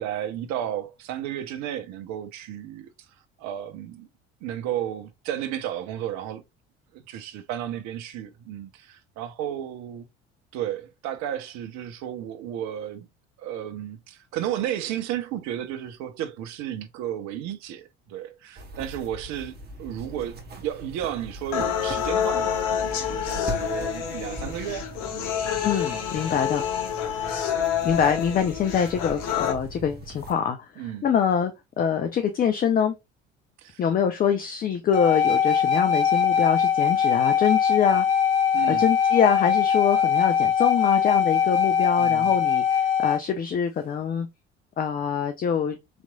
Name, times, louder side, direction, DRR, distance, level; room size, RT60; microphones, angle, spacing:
voice 1, 0.0-2.9 3.4-4.1 4.4-6.4 6.9-10.1 10.5-13.1 13.4-25.3 30.8-31.0 33.6-33.8 38.5-38.9 42.0-42.3, right 11 dB, 55° right, 0.7 m, -33 dB
sound 1, 18.6-30.3, right 1 dB, 30° right, 1.0 m, -40 dB
sound 2, 21.5-29.5, left 9 dB, 60° left, 0.8 m, -28 dB
voice 2, 25.6-26.6 27.8-31.5 31.8-32.9 33.8-38.1 38.7-44.3 44.8-45.8, left 7 dB, 25° left, 0.4 m, -24 dB
sound 3, 34.9-43.2, left 7 dB, 90° left, 0.6 m, -21 dB
4.0 x 2.9 x 2.2 m
hypercardioid pair, 60°, 35 cm